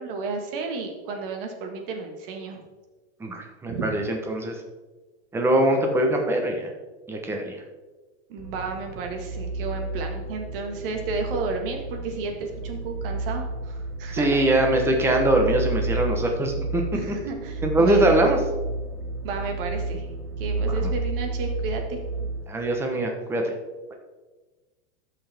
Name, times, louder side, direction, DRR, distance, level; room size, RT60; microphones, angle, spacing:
voice 1, 0.0-2.6 3.7-3.9 8.3-14.6 16.9-18.1 19.2-20.1 20.4-22.0, right 4 dB, 50° right, 3 dB, 1.7 m, -32 dB
voice 2, 3.2-4.5 5.3-6.7 7.1-7.6 14.1-17.1 17.6-18.4 20.7-20.9 22.5-23.5, right 1 dB, 5° right, 2 dB, 0.9 m, -22 dB
sound 1, 8.4-22.4, right 2 dB, 35° right, 1.5 m, -31 dB
13.5 x 5.9 x 3.5 m, 1.2 s
supercardioid pair, 160°, 34 cm